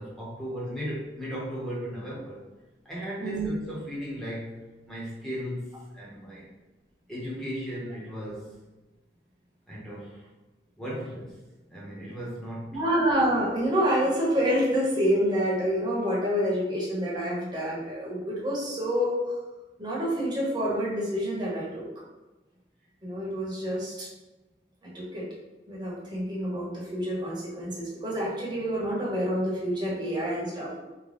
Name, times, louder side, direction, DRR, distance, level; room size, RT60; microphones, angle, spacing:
voice 1, 0.0-2.4 2.8-6.5 7.1-8.5 9.7-10.3 10.8-11.4 11.7-12.8, equal, 5° left, -7 dB, 0.9 m, -36 dB
voice 2, 12.7-19.4 19.8-21.8 23.0-24.1 24.8-25.3 25.7-30.8, equal, 25° right, -6 dB, 0.9 m, -27 dB
3.7 x 2.2 x 3.3 m, 1.1 s
head